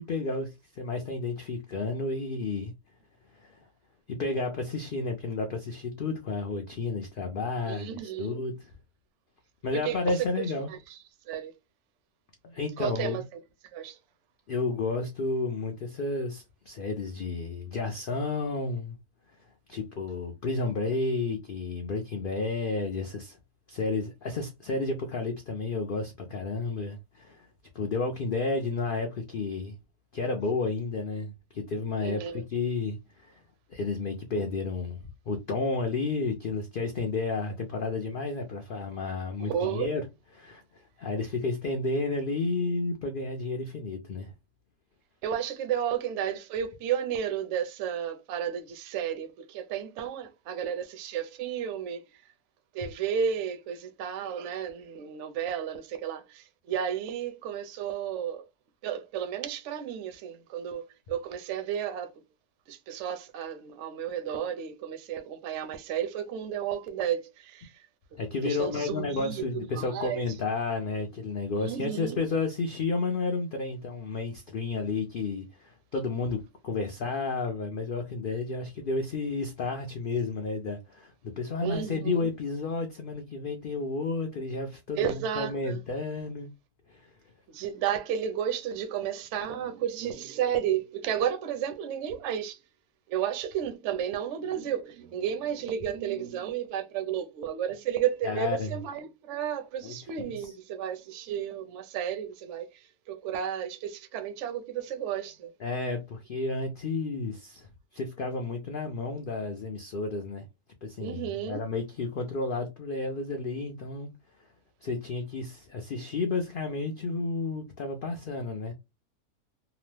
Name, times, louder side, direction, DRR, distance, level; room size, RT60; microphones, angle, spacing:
voice 1, 0.0-2.7 3.3-3.6 4.1-8.7 9.6-10.7 12.4-13.2 14.5-19.0 19.7-23.4 23.7-27.5 27.7-29.8 30.1-33.4 33.7-35.0 35.3-40.0 40.4-44.3 68.2-86.5 86.9-87.1 98.2-98.8 99.8-100.0 100.3-100.5 105.6-107.7 107.9-110.4 110.8-114.1 114.8-118.7, left 3 dB, 90° left, 0.4 m, -31 dB
voice 2, 7.7-8.4 9.7-11.0 11.3-11.5 12.8-13.2 13.7-14.0 32.0-32.4 39.4-39.9 45.2-52.0 52.7-58.4 58.8-62.1 62.7-67.7 68.4-69.4 69.7-70.2 71.6-72.2 81.6-82.3 85.0-85.8 87.5-92.6 93.1-102.7 103.1-105.5 111.0-111.6, right 9 dB, 65° right, 0.8 m, -32 dB
2.9 x 2.0 x 3.1 m
omnidirectional pair, 1.6 m